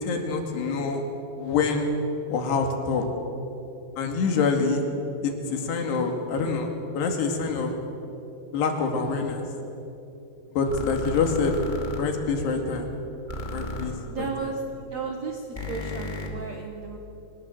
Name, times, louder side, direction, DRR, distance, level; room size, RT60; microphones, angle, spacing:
voice 1, 0.0-1.0 1.4-1.9 2.3-3.1 4.0-4.9 5.2-7.8 8.5-9.4 10.5-11.6 12.0-12.9 13.5-14.5, left 4 dB, 75° left, 4 dB, 4.3 m, -26 dB
sound 1, 10.7-12.0 13.3-13.9 15.6-16.3, left 2 dB, 15° left, 1.7 m, -34 dB
voice 2, 14.1-14.6 14.9-17.0, right 5 dB, 65° right, 3 dB, 1.8 m, -34 dB
23.5 x 19.5 x 7.8 m, 2.9 s
omnidirectional pair, 4.9 m